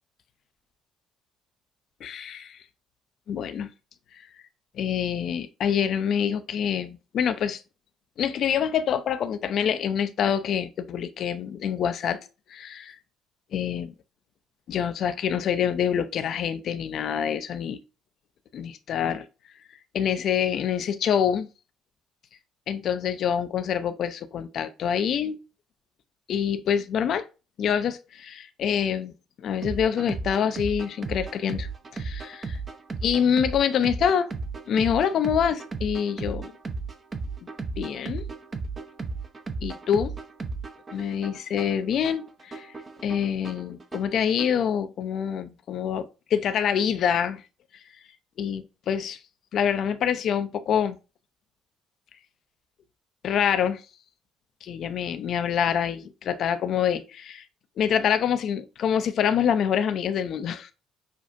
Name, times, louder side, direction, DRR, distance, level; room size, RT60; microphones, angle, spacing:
voice 1, 2.0-2.6 3.3-3.7 4.7-7.6 8.2-12.2 12.5-13.0 13.5-13.9 14.7-17.8 18.5-19.3 19.9-21.5 22.7-25.4 26.3-27.3 27.6-32.6 33.0-34.3 34.7-36.5 37.8-38.3 39.6-40.1 40.9-42.7 43.0-47.4 48.4-49.2 49.5-51.0 53.2-53.8 54.6-57.4 57.8-60.7, left 8 dB, 55° left, 0.5 m, -26 dB
sound 1, 29.6-44.6, right 4 dB, 35° right, 0.7 m, -35 dB
6.5 x 2.4 x 2.6 m
figure-of-eight pair, 50°, 0 cm